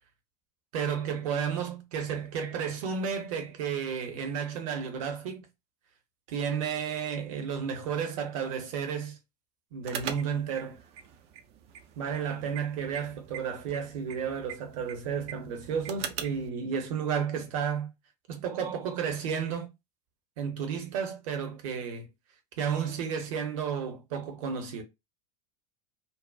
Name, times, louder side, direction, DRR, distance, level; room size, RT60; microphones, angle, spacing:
voice 1, 0.7-5.5 6.3-9.2 9.7-10.8 12.0-17.9 18.3-19.7 20.4-22.1 22.6-24.8, right 7 dB, 50° right, 0.7 m, -32 dB
sound 1, 9.8-16.5, right 8 dB, 30° right, 0.3 m, -42 dB
2.6 x 2.0 x 2.3 m
figure-of-eight pair, 80°, 21 cm